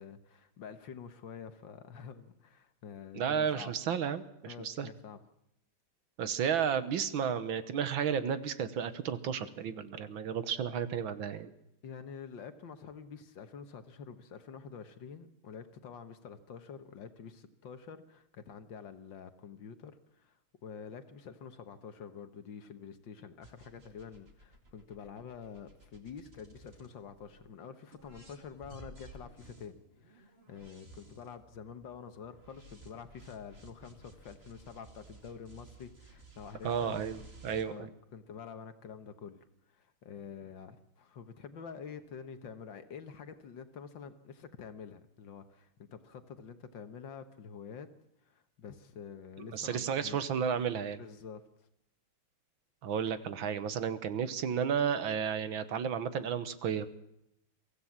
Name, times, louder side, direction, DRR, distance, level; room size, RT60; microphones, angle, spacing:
voice 1, 0.0-3.7 4.5-5.2 11.8-20.4 20.6-37.0 37.6-39.5 39.7-47.9 48.3-50.4 51.0-51.4, left 6 dB, 65° left, 9 dB, 1.9 m, -47 dB
voice 2, 3.1-4.9 6.2-11.5 36.6-37.9 49.4-51.0 52.8-56.9, right 7 dB, 70° right, 12 dB, 1.8 m, -33 dB
sound 1, 23.4-27.5 27.9-37.6, right 2 dB, 30° right, 2.6 m, -55 dB
23.5 x 15.5 x 7.3 m, 0.81 s
omnidirectional pair, 2.3 m